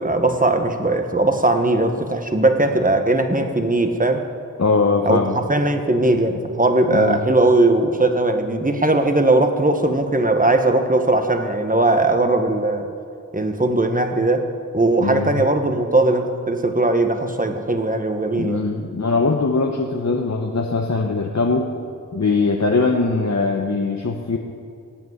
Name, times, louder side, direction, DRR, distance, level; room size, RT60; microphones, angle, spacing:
voice 1, 0.0-4.2 5.0-12.9 13.3-14.5 14.7-18.6, right 2 dB, 25° right, 6 dB, 1.3 m, -19 dB
voice 2, 4.6-5.4 6.9-7.2 15.0-15.4 18.3-21.7 22.1-24.4, left 3 dB, 55° left, 2 dB, 0.9 m, -21 dB
17.0 x 6.1 x 9.4 m, 2.4 s
wide cardioid pair, 55°, 33 cm